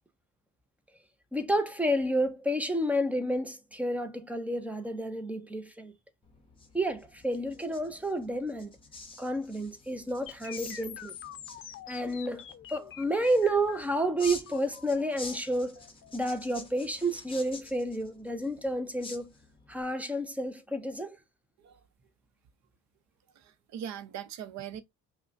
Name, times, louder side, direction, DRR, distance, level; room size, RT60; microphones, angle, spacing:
voice 1, 1.3-5.9 6.7-8.8 9.2-11.1 11.9-15.8 16.1-19.3 19.7-21.2, right 1 dB, 5° right, 0.5 m, -30 dB
sound 1, 6.2-19.8, left 3 dB, 15° left, 0.9 m, -49 dB
sound 2, 10.3-18.2, left 10 dB, 45° left, 0.6 m, -47 dB
voice 2, 23.3-24.8, right 9 dB, 60° right, 0.7 m, -41 dB
5.3 x 2.2 x 2.5 m
cardioid pair, 145°, 30 cm